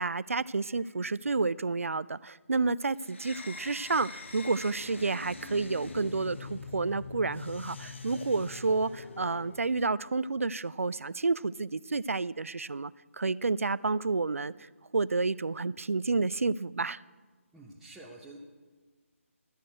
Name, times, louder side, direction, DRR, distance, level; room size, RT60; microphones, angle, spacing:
voice 1, 0.0-17.0, right 3 dB, 70° right, 20 dB, 0.3 m, -30 dB
sound 1, 3.1-9.7, left 4 dB, 55° left, 1.1 m, -43 dB
voice 2, 17.5-18.4, right 2 dB, 5° right, -7 dB, 0.7 m, -48 dB
13.0 x 6.5 x 7.8 m, 1.4 s
figure-of-eight pair, 150°, 8 cm